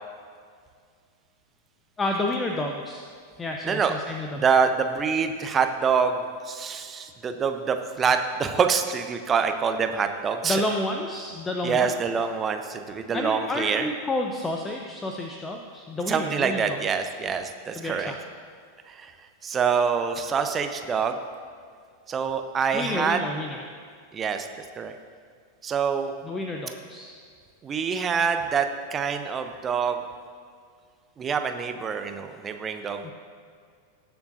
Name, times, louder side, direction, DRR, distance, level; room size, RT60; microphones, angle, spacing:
voice 1, 2.0-3.1 3.4-4.4 10.4-12.0 13.1-16.8 17.7-18.2 22.7-23.6 26.2-27.2 33.0-33.1, left 2 dB, 15° left, 2 dB, 0.7 m, -30 dB
voice 2, 4.3-10.6 11.6-13.9 16.1-18.1 18.9-19.1 19.4-21.2 22.1-23.2 24.1-24.5 24.7-24.9 25.6-26.1 27.6-30.0 31.2-33.1, right 6 dB, 25° right, 7 dB, 0.7 m, -26 dB
19.0 x 7.0 x 2.6 m, 2.1 s
figure-of-eight pair, 90°, 0 cm